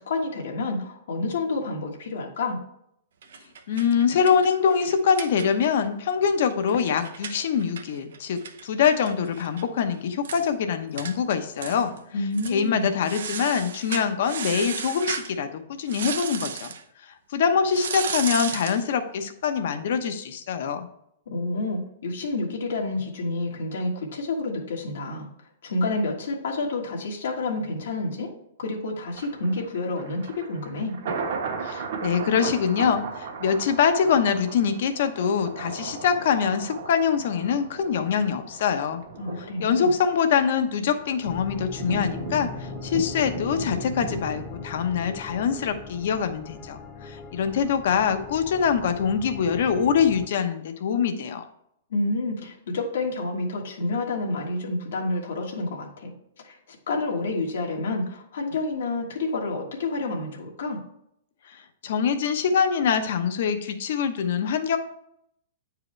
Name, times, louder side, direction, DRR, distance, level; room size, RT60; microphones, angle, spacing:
voice 1, 0.0-2.6 12.1-12.9 21.3-25.3 25.6-28.3 28.6-30.9 39.2-39.9 51.9-56.1 56.4-60.8, left 2 dB, 80° left, -1 dB, 1.5 m, -29 dB
sound 1, 3.2-5.9 6.2-6.3 6.5-9.6 9.9-10.0 10.2-10.5 11.0-11.2 11.6-12.0 12.3-12.6 13.0-15.3 15.9-16.8 17.7-18.8, right 7 dB, 80° right, 0.8 m, -34 dB
voice 2, 3.7-11.9 12.5-16.7 17.1-20.9 31.6-39.0 39.6-51.4 61.5-61.6 61.8-64.8, left 7 dB, 60° left, 8 dB, 0.9 m, -24 dB
Thunder, 29.1-46.2 46.6-46.7, right 4 dB, 60° right, 1.4 m, -37 dB
sound 2, 41.2-50.3, left 6 dB, 15° left, 0.6 m, -41 dB
8.8 x 4.8 x 3.2 m, 0.73 s
hypercardioid pair, 160°, 0 cm